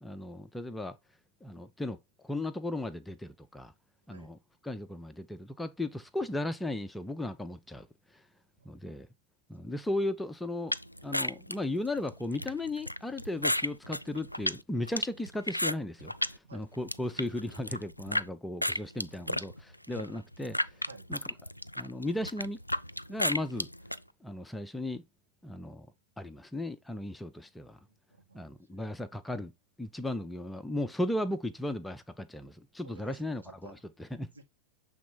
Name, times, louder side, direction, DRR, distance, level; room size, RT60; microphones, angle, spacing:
voice 1, 0.0-1.0 1.4-2.0 2.2-3.7 4.1-4.4 4.6-7.9 8.1-8.2 8.7-9.1 9.5-10.8 11.0-20.6 21.1-21.2 21.8-22.6 23.1-23.7 24.2-25.0 25.4-25.9 26.2-27.8 28.3-29.5 29.8-34.3, left 1 dB, 5° left, 0.6 m, -36 dB
sound 1, 10.7-16.4 16.7-18.3 18.6-24.0, left 1 dB, 90° left, 0.3 m, -33 dB
voice 2, 19.1-19.4 20.9-21.1 27.9-28.5 32.8-33.8 34.3-34.4, right 3 dB, 80° right, 2.0 m, -53 dB
7.1 x 3.5 x 4.3 m
figure-of-eight pair, 90°, 0 cm